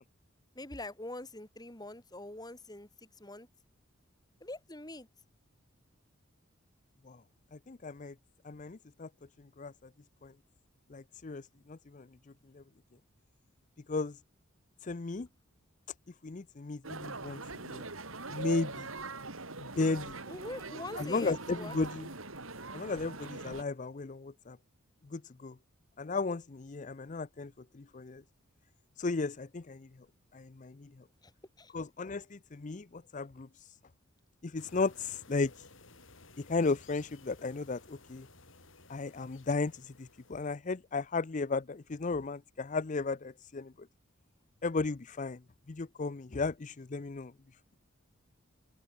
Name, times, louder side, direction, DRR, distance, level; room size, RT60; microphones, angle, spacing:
voice 1, 0.5-3.5 4.4-5.1 20.3-21.7 31.2-31.3 31.6-31.7, left 2 dB, 20° left, 4.1 m, -44 dB
voice 2, 7.5-8.1 8.4-9.1 9.4-9.7 10.2-10.3 10.9-12.1 12.5-12.6 13.9-14.2 14.8-15.3 16.2-17.9 18.3-18.9 19.6-20.2 21.0-22.1 22.7-24.6 25.1-25.6 26.0-28.2 29.0-29.9 30.3-30.9 31.7-33.8 34.4-35.7 36.4-38.3 38.9-43.9 44.6-45.4 45.7-47.3, left 3 dB, 35° left, 0.5 m, -35 dB
sound 1, 16.8-23.6, right 3 dB, 80° right, 6.1 m, -42 dB
sound 2, 34.6-40.6, left 3 dB, 65° left, 6.3 m, -57 dB
head